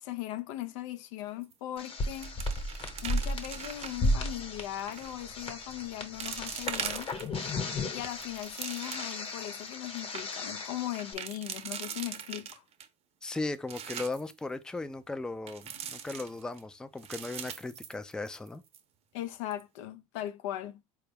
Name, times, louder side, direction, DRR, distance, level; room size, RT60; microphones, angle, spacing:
voice 1, 0.0-2.4 3.0-7.1 7.9-12.6 19.1-20.8, left 14 dB, 75° left, 0.5 m, -39 dB
sound 1, 1.4-1.8 2.0-4.1 4.8-5.1 5.7-5.8 6.2-7.5 8.0-9.3 9.7-9.8 10.0-10.2 10.9-12.9 13.3-14.3 15.5-16.6 17.0-18.5 18.7-18.8 19.3-19.6, right 8 dB, 40° right, 0.6 m, -41 dB
sound 2, 1.8-11.1, left 1 dB, 35° left, 1.0 m, -35 dB
voice 2, 13.2-18.6, left 2 dB, 5° left, 0.3 m, -37 dB
4.1 x 2.3 x 3.4 m
hypercardioid pair, 90°, 16 cm